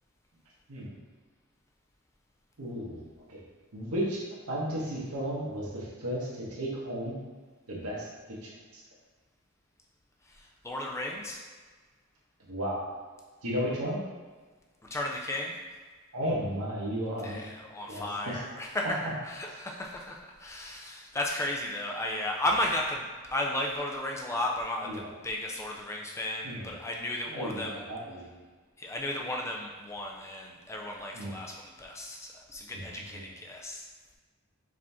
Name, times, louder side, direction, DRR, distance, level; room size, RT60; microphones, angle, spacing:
voice 1, 2.6-3.4 3.7-4.2 4.5-7.2 7.7-8.8 12.4-12.9 13.4-14.0 16.1-17.4 17.9-18.4 24.8-25.1 26.4-26.7 27.3-28.3 31.1-31.3 32.7-32.8 33.1-33.2, equal, 90° right, -4 dB, 1.2 m, -34 dB
voice 2, 10.3-11.4 14.9-15.6 17.2-27.8 28.8-33.9, left 1 dB, 15° left, 0 dB, 0.4 m, -34 dB
5.0 x 2.7 x 3.5 m, 1.4 s
head